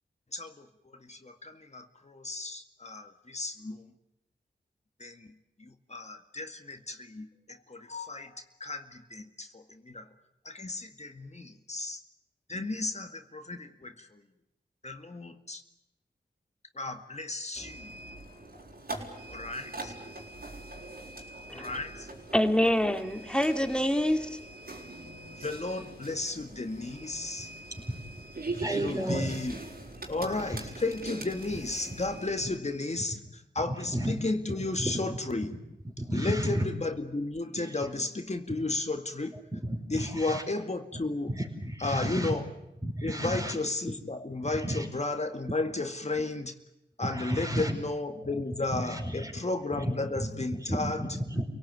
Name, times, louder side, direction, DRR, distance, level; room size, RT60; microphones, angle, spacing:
voice 1, 0.3-0.7 1.0-3.8 5.0-5.3 5.9-10.1 10.5-12.0 12.5-14.1 14.8-15.6 16.8-17.9 19.3-19.9 21.5-22.1 25.4-27.5 28.7-29.5 30.1-33.2 33.6-35.6 36.1-39.4 39.9-41.3 41.8-42.4 43.0-46.5 47.0-51.0, left 2 dB, 40° left, 2.1 m, -34 dB
sound 1, 17.5-32.6, right 2 dB, 60° right, 6.3 m, -42 dB
voice 2, 22.3-24.4, equal, 5° left, 2.7 m, -26 dB
voice 3, 28.5-29.4 30.2-30.7 33.7-34.2 34.8-35.2 35.8-36.7 37.5-37.9 39.5-40.4 41.3-42.4 42.8-43.5 44.4-44.9 47.0-47.7 48.2-49.3 49.7-51.5, right 1 dB, 15° right, 4.8 m, -33 dB
28.5 x 18.0 x 9.4 m
cardioid pair, 45°, 18 cm